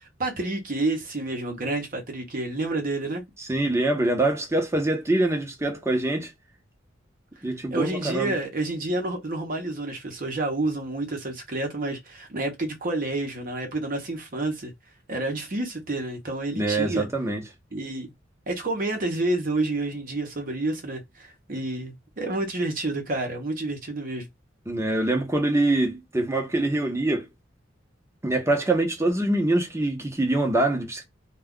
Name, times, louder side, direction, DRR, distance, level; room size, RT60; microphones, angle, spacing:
voice 1, 0.0-3.2 7.7-14.7 15.1-17.1 17.7-18.1 18.5-24.3, right 2 dB, 45° right, 0.8 m, -29 dB
voice 2, 3.4-6.3 7.4-8.3 16.5-17.4 24.7-27.3 28.2-31.1, right 2 dB, 15° right, 0.7 m, -24 dB
2.3 x 2.2 x 3.6 m
head